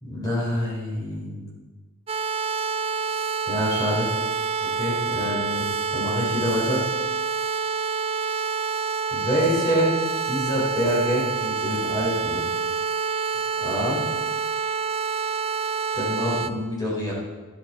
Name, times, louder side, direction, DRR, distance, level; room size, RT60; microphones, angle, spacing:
voice 1, 0.0-1.5 3.5-4.1 4.6-6.8 9.1-9.9 10.2-12.4 13.6-14.0 15.9-17.1, equal, 20° left, -7 dB, 4.1 m, -26 dB
sound 1, 2.1-16.5, right 5 dB, 25° right, 0.5 m, -27 dB
14.0 x 10.0 x 4.4 m, 1.3 s
head